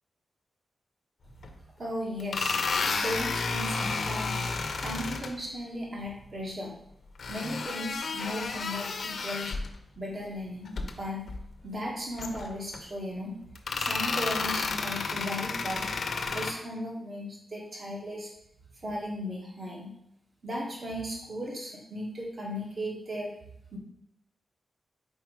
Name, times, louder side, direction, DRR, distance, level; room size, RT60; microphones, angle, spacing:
sound 1, 1.4-1.5 2.2-5.3 7.2-9.7 10.6-10.9 11.3-11.4 12.2-12.8 13.5-16.5, left 4 dB, 70° left, 0.6 m, -31 dB
voice 1, 1.8-2.7 3.0-4.4 4.8-6.7 7.3-9.6 9.9-11.2 11.6-13.3 13.8-18.3 18.8-19.9 20.4-23.3 23.7-23.8, equal, 50° right, -3 dB, 1.7 m, -36 dB
4.6 x 4.3 x 4.9 m, 0.75 s
cardioid pair, 80°, 0 cm